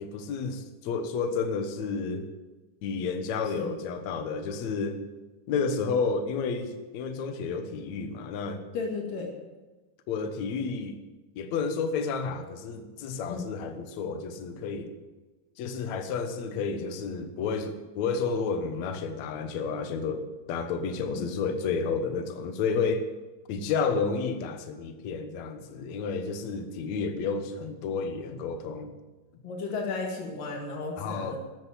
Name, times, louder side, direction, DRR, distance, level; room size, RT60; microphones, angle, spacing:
voice 1, 0.0-2.3 2.8-5.0 5.5-8.6 10.1-11.0 11.4-14.9 15.6-20.2 20.5-23.0 23.5-28.9 31.0-31.4, left 5 dB, 65° left, 7 dB, 2.3 m, -31 dB
voice 2, 8.7-9.3 13.3-13.5 21.1-21.3 29.4-31.4, left 4 dB, 80° left, 0 dB, 3.9 m, -34 dB
14.0 x 9.0 x 9.2 m, 1.2 s
omnidirectional pair, 3.8 m